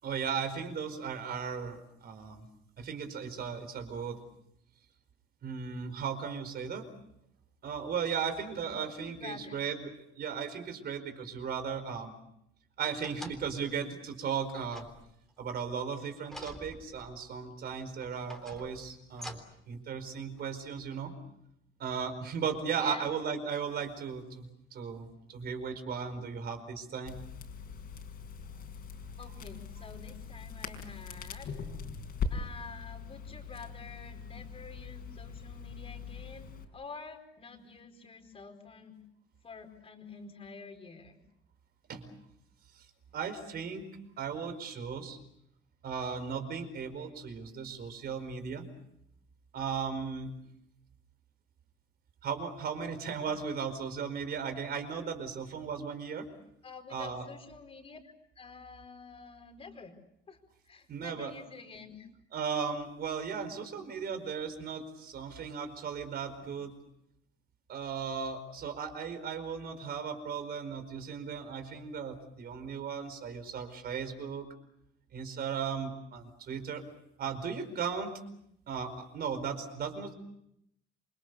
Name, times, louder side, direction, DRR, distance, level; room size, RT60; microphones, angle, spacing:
voice 1, 0.0-2.5 2.8-4.2 5.4-6.8 7.6-12.2 12.8-14.9 15.4-19.4 19.7-21.1 21.8-24.5 24.7-27.2 41.9-42.0 43.1-43.8 44.2-45.2 45.8-48.7 49.5-50.3 52.2-56.3 56.9-57.3 60.9-61.3 62.3-66.7 67.7-74.5 75.1-76.8 77.2-78.1 78.7-80.1, right 6 dB, 50° right, 8 dB, 4.7 m, -36 dB
voice 2, 9.0-9.6 22.8-23.1 29.2-31.5 32.3-39.0 39.4-41.2 56.6-60.0 60.3-60.4 60.7-62.1, left 4 dB, 30° left, 5 dB, 4.6 m, -48 dB
sound 1, 12.8-13.7 14.6-15.5 16.2-17.3 18.0-19.7 20.4-20.5, left 1 dB, ahead, 3.5 m, -48 dB
Crackle, 27.1-36.6, left 5 dB, 50° left, 5.2 m, -41 dB
28.0 x 25.5 x 6.8 m, 0.76 s
cardioid pair, 155°, 21 cm